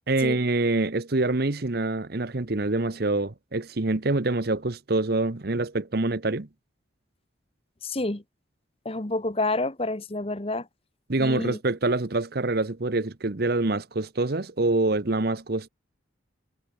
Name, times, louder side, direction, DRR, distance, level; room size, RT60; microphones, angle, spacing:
voice 1, 0.1-6.5 11.1-15.7, right 2 dB, 50° right, 1.0 m, -25 dB
voice 2, 7.8-8.2 8.8-10.7 11.2-11.6, left 2 dB, 30° left, 1.1 m, -28 dB
head